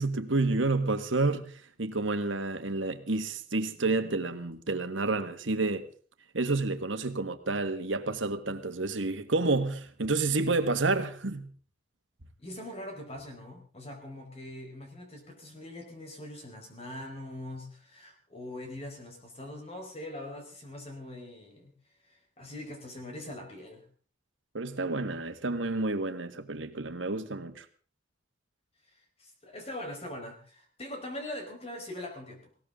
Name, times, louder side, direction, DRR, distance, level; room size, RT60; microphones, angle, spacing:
voice 1, 0.0-5.9 6.3-11.5 24.5-27.6, right 3 dB, 85° right, 1.6 m, -29 dB
voice 2, 12.4-21.7 22.0-23.9 29.2-32.5, left 1 dB, 30° left, 4.6 m, -42 dB
20.0 x 18.0 x 3.8 m
head